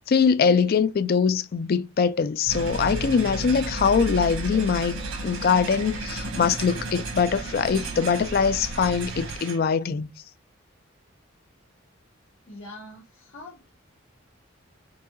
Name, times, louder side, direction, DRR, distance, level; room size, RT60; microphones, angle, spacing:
voice 1, 0.1-10.1, left 6 dB, 45° left, 0.3 m, -23 dB
sound 1, 2.5-9.4, right 2 dB, 55° right, 0.4 m, -35 dB
sound 2, 2.5-9.6, right 2 dB, 85° right, 1.4 m, -36 dB
voice 2, 12.5-13.7, left 2 dB, 80° left, 1.2 m, -43 dB
4.0 x 2.7 x 2.5 m
head